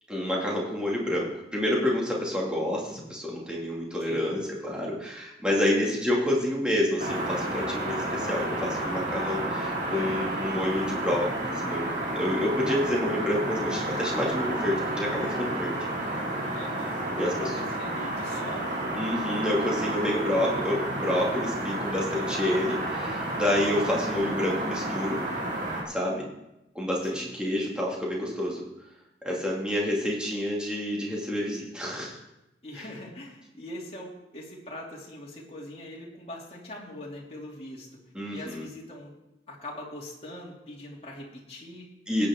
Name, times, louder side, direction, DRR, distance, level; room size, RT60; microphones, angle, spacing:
voice 1, 0.1-15.8 17.2-17.5 19.0-25.2 25.9-26.3 26.7-28.6 29.2-32.2 32.8-32.9 38.1-38.7 42.1-42.3, left 1 dB, 5° right, -4 dB, 2.2 m, -28 dB
voice 2, 4.0-4.4 16.5-18.9 23.7-24.2 27.1-27.4 32.6-38.0 38.3-39.2 39.5-41.9, left 1 dB, 35° left, -3 dB, 2.6 m, -42 dB
sound 1, 7.0-25.8, right 1 dB, 45° right, 2.3 m, -31 dB
16.5 x 8.7 x 3.6 m, 0.90 s
head